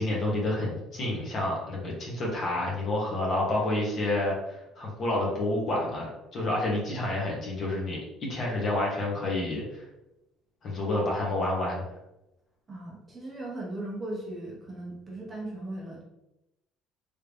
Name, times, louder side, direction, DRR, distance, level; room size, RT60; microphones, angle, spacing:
voice 1, 0.0-9.8 10.6-11.8, left 1 dB, 40° left, -3 dB, 1.2 m, -29 dB
voice 2, 12.7-16.0, right 1 dB, 20° right, -4 dB, 0.8 m, -38 dB
3.3 x 2.8 x 3.4 m, 0.90 s
cardioid pair, 165°, 0 cm